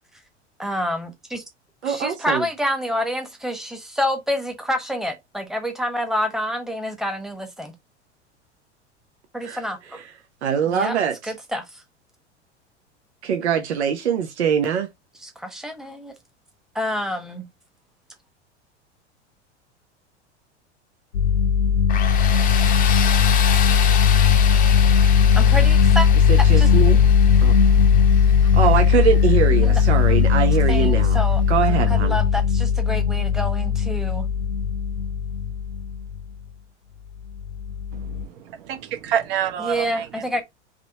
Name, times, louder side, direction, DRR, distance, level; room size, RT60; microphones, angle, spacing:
voice 1, 0.6-1.4 1.8-7.7 9.3-10.0 10.7-11.0 11.2-11.8 15.2-16.2 16.7-17.5 25.3-26.1 26.6-26.7 29.6-29.8 30.7-31.4 31.7-34.3 39.6-40.4, equal, ahead, 1.1 m, -28 dB
voice 2, 1.8-2.4 9.4-9.6 10.4-11.1 13.2-14.9 26.3-27.0 27.4-27.5 28.5-31.2 31.5-32.2, right 7 dB, 65° right, 0.8 m, -22 dB
sound 1, 21.1-36.2 37.4-38.2, left 7 dB, 70° left, 0.8 m, -18 dB
Tools, 21.9-30.7, left 8 dB, 25° left, 0.7 m, -30 dB
voice 3, 38.0-40.1, right 9 dB, 50° right, 1.2 m, -27 dB
3.8 x 3.1 x 4.5 m
figure-of-eight pair, 85°, 35 cm